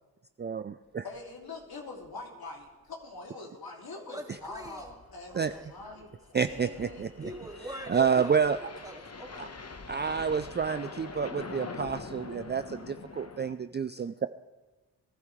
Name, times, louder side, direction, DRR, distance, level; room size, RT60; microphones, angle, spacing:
voice 1, 0.4-1.0 5.3-5.5 6.3-7.3 7.9-8.6 9.4-9.5 9.9-14.3, right 6 dB, 25° right, 11 dB, 0.4 m, -29 dB
voice 2, 1.0-7.1, left 3 dB, 60° left, 0 dB, 2.7 m, -44 dB
sound 1, 1.3-1.4 1.6-1.7 2.0-2.1 2.6-2.9 4.2-13.5, left 4 dB, 40° left, 1.2 m, -45 dB
voice 3, 4.1-4.9 5.3-6.0 6.3-6.4 7.2-9.5, equal, 10° right, 1 dB, 2.4 m, -43 dB
22.0 x 12.0 x 3.2 m, 1.2 s
cardioid pair, 50°, 41 cm